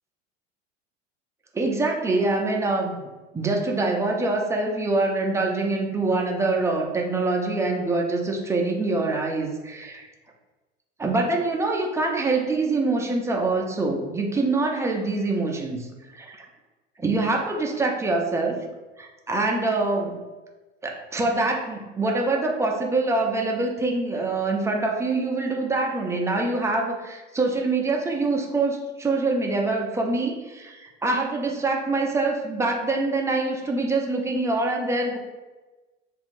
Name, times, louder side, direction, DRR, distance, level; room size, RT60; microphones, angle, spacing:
voice 1, 1.5-3.0 3.3-10.1 11.0-16.5 17.0-18.6 19.0-20.2 20.8-35.2, right 3 dB, 10° right, 1 dB, 0.3 m, -25 dB
2.7 x 2.4 x 4.0 m, 1.2 s
figure-of-eight pair, 75°, 38 cm